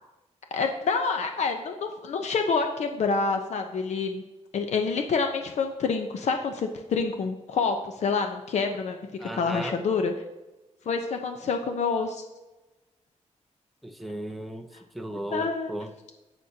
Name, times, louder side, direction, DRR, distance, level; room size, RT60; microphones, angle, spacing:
voice 1, 0.5-4.2 4.5-10.1 10.9-12.2 15.3-15.7, left 4 dB, 70° left, 5 dB, 0.8 m, -27 dB
voice 2, 9.2-9.8 13.8-14.7 14.9-15.9, right 1 dB, ahead, 4 dB, 0.8 m, -35 dB
17.5 x 6.3 x 2.8 m, 1.1 s
wide cardioid pair, 155°, 12 cm